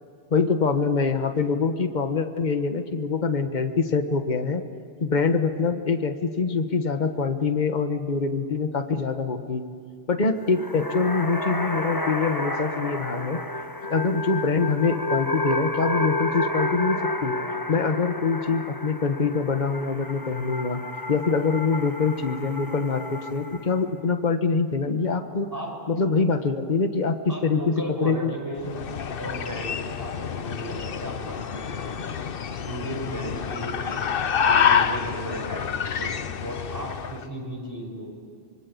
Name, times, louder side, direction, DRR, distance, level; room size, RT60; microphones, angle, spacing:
voice 1, 0.3-4.6 5.0-9.6 10.1-13.4 13.9-17.4 17.7-20.8 21.1-25.5 25.9-27.7 28.0-28.3, left 4 dB, 45° left, 7 dB, 1.5 m, -24 dB
sound 1, 10.4-23.8, left 2 dB, 20° left, 1.3 m, -30 dB
voice 2, 27.3-28.8 29.2-32.3 32.6-34.0 34.4-38.1, right 1 dB, 20° right, 0 dB, 5.5 m, -35 dB
sound 2, 28.6-37.2, left 7 dB, 60° left, 1.0 m, -27 dB
25.5 x 24.0 x 8.5 m, 2.2 s
omnidirectional pair, 1.1 m